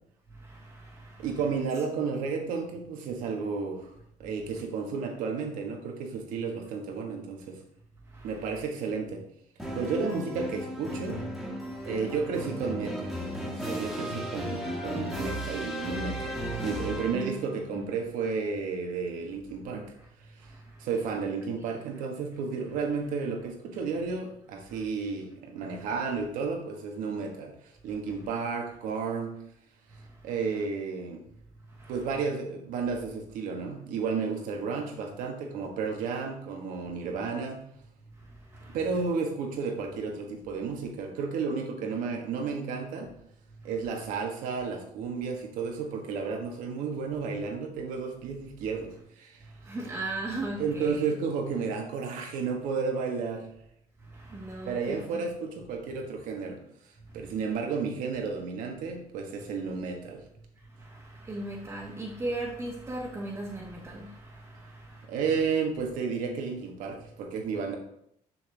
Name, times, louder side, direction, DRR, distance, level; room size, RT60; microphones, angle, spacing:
voice 1, 1.2-3.9 4.2-7.6 8.2-9.2 9.7-11.2 11.8-16.3 16.6-19.8 20.4-20.5 20.8-27.5 27.8-29.4 30.2-31.2 31.9-37.6 38.7-43.1 43.6-49.4 50.6-53.5 54.7-56.6 57.1-60.2 65.1-67.8, right 5 dB, 85° right, 1.6 m, -32 dB
sound 1, 9.6-17.5, equal, ahead, 1.7 m, -35 dB
voice 2, 17.1-17.4 17.7-17.9 49.7-51.1 54.3-55.3 61.2-64.2 64.6-64.7, right 2 dB, 20° right, 1.4 m, -36 dB
6.9 x 6.0 x 3.5 m
cardioid pair, 120°, 14 cm